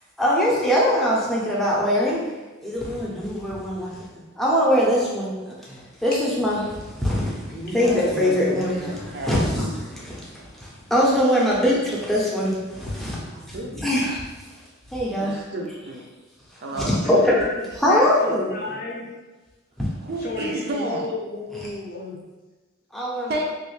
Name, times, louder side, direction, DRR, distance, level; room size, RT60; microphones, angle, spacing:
voice 1, 0.2-2.2 2.9-3.7 4.4-5.3 6.0-6.6 7.0-7.2 7.6-8.9 9.3-9.4 10.9-11.8 12.1-12.5 13.8-14.1 14.9-15.3 17.1-17.4 17.8-18.5 23.0-23.3, equal, ahead, -6 dB, 0.6 m, -20 dB
voice 2, 9.1-9.4 13.3-14.1 15.1-16.1 16.6-17.0 20.0-21.1 23.3-23.4, right 1 dB, 50° right, 0 dB, 0.5 m, -31 dB
voice 3, 17.2-19.1 20.2-22.2, left 2 dB, 45° left, -3 dB, 0.7 m, -33 dB
3.2 x 2.4 x 3.1 m, 1.2 s
head